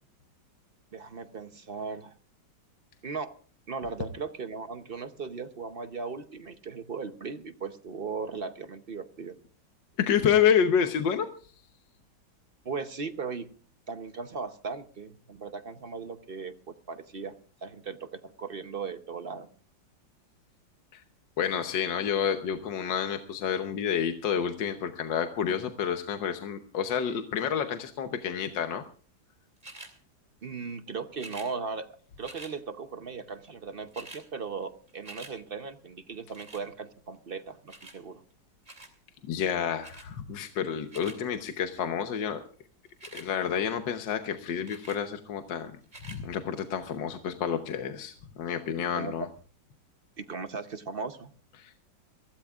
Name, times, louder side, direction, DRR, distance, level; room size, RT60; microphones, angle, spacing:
voice 1, 0.9-2.1 3.0-3.3 3.7-9.3 12.6-13.5 13.9-17.4 17.6-19.5 30.4-38.2 48.9-49.3 50.2-51.3, right 5 dB, 50° right, 9 dB, 0.7 m, -37 dB
voice 2, 10.0-11.3 20.9-21.0 21.4-28.8 39.3-42.4 43.1-45.8 46.0-49.3 51.6-51.7, left 8 dB, 70° left, 6 dB, 1.6 m, -29 dB
sound 1, 29.6-29.9 31.1-31.5 32.2-32.5 33.5-33.6 33.8-34.2 34.6-35.3 36.3-36.7 37.7-38.0 38.6-38.9 39.8-40.1 40.7-41.2 42.9-43.3 44.7-45.0 45.8-46.2 46.9-47.0, right 2 dB, 20° right, 2.8 m, -46 dB
23.5 x 16.5 x 2.4 m, 0.42 s
omnidirectional pair, 2.1 m